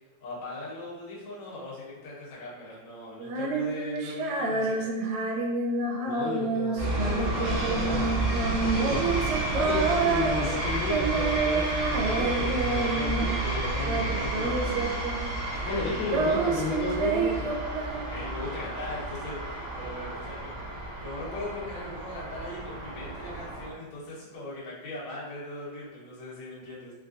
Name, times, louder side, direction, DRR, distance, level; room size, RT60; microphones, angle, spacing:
voice 1, 0.2-4.9 15.5-16.3 17.9-20.6 21.0-26.9, left 1 dB, 65° left, -7 dB, 2.3 m, -40 dB
Female singing, 3.2-13.5 13.8-15.5 15.7-18.4, right 4 dB, 80° right, 1.8 m, -29 dB
voice 2, 6.1-8.1 8.6-9.2 9.5-14.9 15.7-17.5, left 3 dB, 85° left, -4 dB, 2.3 m, -33 dB
sound 1, 6.8-23.7, right 1 dB, 50° right, 1.5 m, -31 dB
5.7 x 2.2 x 2.5 m, 1.3 s
omnidirectional pair, 3.5 m